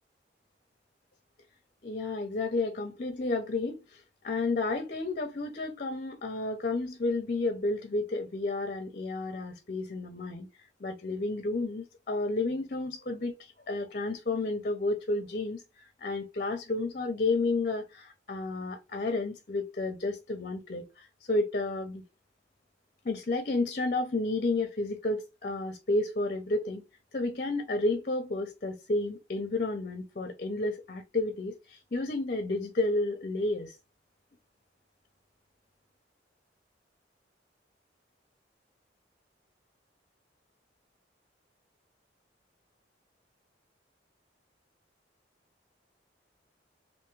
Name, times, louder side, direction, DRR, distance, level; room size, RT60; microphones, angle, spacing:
voice 1, 1.8-10.5 10.8-22.0 23.0-26.8 27.1-33.8, left 2 dB, 45° left, 0.7 m, -31 dB
3.4 x 2.7 x 3.1 m
head